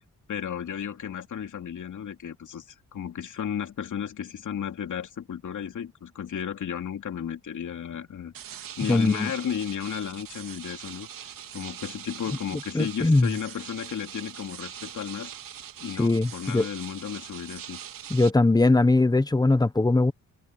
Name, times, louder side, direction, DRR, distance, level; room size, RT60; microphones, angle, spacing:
voice 1, 0.3-8.3 8.8-15.4 15.8-17.8, left 8 dB, 65° left, 2.9 m, -34 dB
sound 1, 8.3-18.3, right 9 dB, 85° right, 3.3 m, -42 dB
voice 2, 8.9-9.3 12.7-13.3 16.0-16.7 18.1-20.1, left 2 dB, 10° left, 1.0 m, -21 dB
cardioid pair, 120°, 33 cm